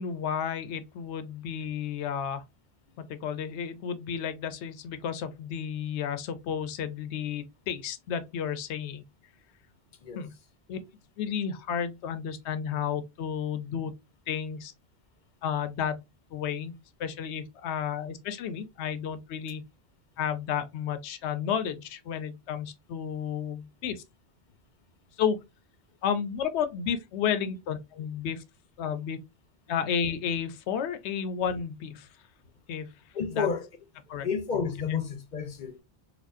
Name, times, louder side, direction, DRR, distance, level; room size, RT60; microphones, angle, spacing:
voice 1, 0.0-2.4 3.0-9.0 10.2-10.3 10.7-10.8 11.2-13.9 14.3-14.7 15.4-16.0 16.3-16.7 17.0-19.6 20.2-24.0 25.2-25.4 26.0-28.4 28.8-29.2 29.7-32.1 32.7-32.9 33.3-33.5 34.1-34.3, left 8 dB, 80° left, 0.9 m, -32 dB
voice 2, 33.1-33.7 34.2-35.8, left 6 dB, 50° left, 0.8 m, -30 dB
4.2 x 2.3 x 2.5 m
omnidirectional pair, 1.2 m